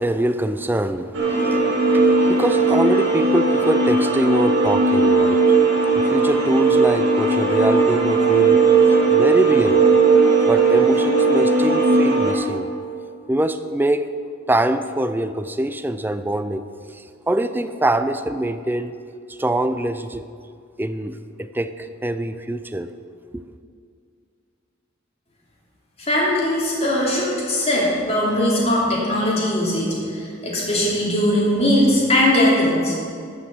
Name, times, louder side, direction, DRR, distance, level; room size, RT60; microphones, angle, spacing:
voice 1, 0.0-8.7 9.1-9.8 10.5-12.7 13.3-14.1 14.5-16.6 16.9-18.9 19.3-20.2 20.8-22.9 23.3-23.4, right 1 dB, 10° right, 10 dB, 0.4 m, -24 dB
sound 1, 1.1-12.3, right 4 dB, 65° right, 3.3 m, -17 dB
voice 2, 26.0-32.9, left 1 dB, 30° left, -4 dB, 2.9 m, -20 dB
13.0 x 6.2 x 7.7 m, 2.3 s
head